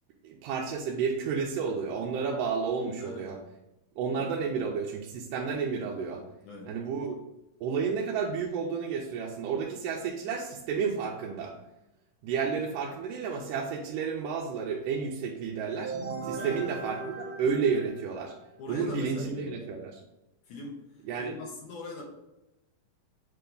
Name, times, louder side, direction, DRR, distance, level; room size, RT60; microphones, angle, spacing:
voice 1, 0.2-3.4 4.0-6.2 6.7-7.2 7.6-11.5 12.2-15.9 16.2-18.3 18.7-20.0 21.1-21.4, right 5 dB, 80° right, -1 dB, 2.1 m, -31 dB
voice 2, 3.0-3.3 4.1-4.7 6.4-6.7 16.4-16.7 18.6-19.8 20.5-22.0, left 3 dB, 70° left, -1 dB, 2.5 m, -42 dB
sound 1, 15.8-18.5, right 4 dB, 55° right, 2.6 m, -38 dB
7.7 x 3.4 x 3.8 m, 0.94 s
omnidirectional pair, 4.0 m